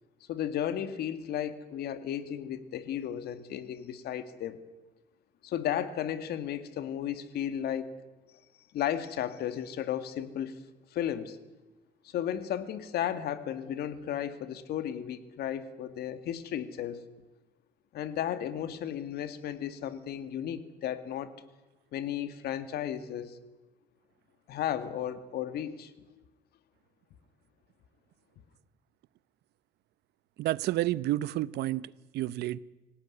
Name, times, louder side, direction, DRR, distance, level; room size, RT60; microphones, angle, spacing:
voice 1, 0.3-4.6 5.4-7.9 8.7-10.6 10.9-11.4 12.0-17.0 17.9-21.3 21.9-23.4 24.5-26.2, left 10 dB, 70° left, 2.0 m, -34 dB
voice 2, 30.4-32.6, right 15 dB, 75° right, 0.8 m, -30 dB
25.5 x 17.5 x 9.7 m
cardioid pair, 110°, 17 cm